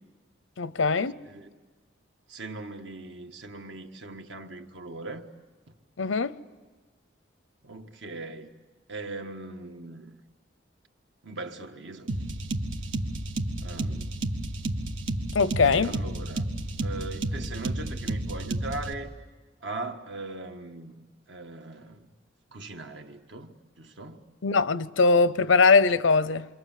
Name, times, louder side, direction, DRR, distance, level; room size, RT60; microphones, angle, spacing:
voice 1, 0.6-1.1 6.0-6.3 15.3-15.9 24.4-26.5, left 4 dB, 85° left, 0.7 m, -21 dB
voice 2, 1.2-1.6 2.3-5.3 7.6-8.5 8.9-10.2 11.2-12.1 13.6-14.1 15.4-16.5 16.8-19.1 19.6-22.1 22.5-24.2, right 2 dB, 70° right, 1.7 m, -40 dB
sound 1, 12.1-18.9, right 1 dB, 90° right, 1.8 m, -31 dB
29.0 x 25.5 x 7.6 m
head